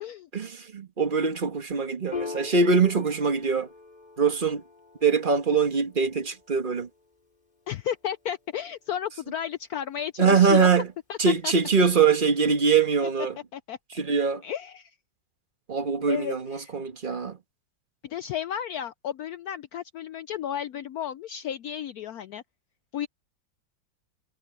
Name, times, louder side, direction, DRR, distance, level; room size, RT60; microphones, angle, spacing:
voice 1, 0.3-3.7 4.2-4.6 5.0-6.9 10.2-10.9 11.2-13.4 13.9-14.4 15.7-17.4, right 5 dB, 30° right, 1.5 m, -23 dB
Piano, 2.1-9.0, left 4 dB, 20° left, 2.4 m, -43 dB
voice 2, 7.7-10.7 11.1-11.2 11.4-11.5 13.5-13.8 14.4-14.9 16.1-16.7 18.0-22.4 22.9-23.1, left 10 dB, 75° left, 0.8 m, -33 dB
omnidirectional pair, 2.1 m